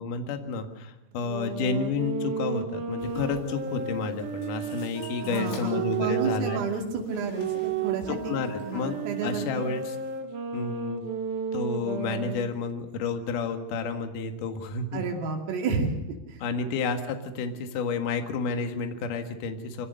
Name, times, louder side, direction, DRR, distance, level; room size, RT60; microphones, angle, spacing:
voice 1, 0.0-6.6 8.1-9.0 9.2-10.0 10.5-11.0 11.5-15.0 16.4-19.9, left 5 dB, 55° left, 6 dB, 2.5 m, -30 dB
sound 1, 1.2-6.7 7.3-12.5, right 6 dB, 60° right, 2.7 m, -33 dB
sound 2, 3.0-10.2, left 3 dB, 80° left, 6.5 m, -50 dB
voice 2, 5.2-9.7 14.9-15.9 16.3-16.4, right 5 dB, 75° right, 2 dB, 5.1 m, -31 dB
24.5 x 17.5 x 6.7 m, 0.95 s
omnidirectional pair, 5.9 m